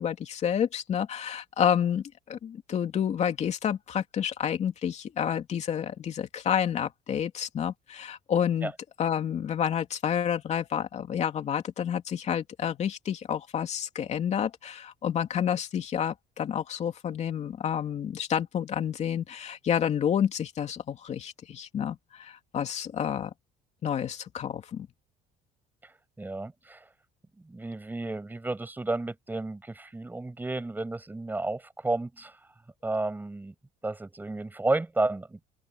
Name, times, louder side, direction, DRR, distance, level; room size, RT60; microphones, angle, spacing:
voice 1, 0.0-8.7 9.0-23.3 23.8-24.9, left 8 dB, 40° left, 2.9 m, -29 dB
voice 2, 25.8-26.9 27.5-32.5 32.8-33.5 33.8-35.5, right 2 dB, 10° right, 7.6 m, -32 dB
open air
cardioid pair, 150°, 18 cm